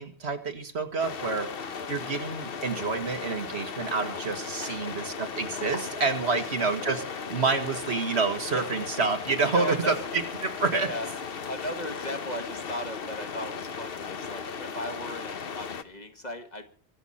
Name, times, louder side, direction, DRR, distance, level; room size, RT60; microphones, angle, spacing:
voice 1, 0.0-10.9, right 4 dB, 75° right, 7 dB, 2.1 m, -28 dB
sound 1, 1.0-15.8, left 6 dB, 60° left, 1.2 m, -36 dB
voice 2, 4.6-4.9 6.3-6.5 8.5-8.7 9.4-10.0 10.8-11.1 11.5-16.7, equal, 40° left, 6 dB, 1.9 m, -36 dB
23.0 x 8.2 x 5.7 m, 0.42 s
omnidirectional pair, 1.1 m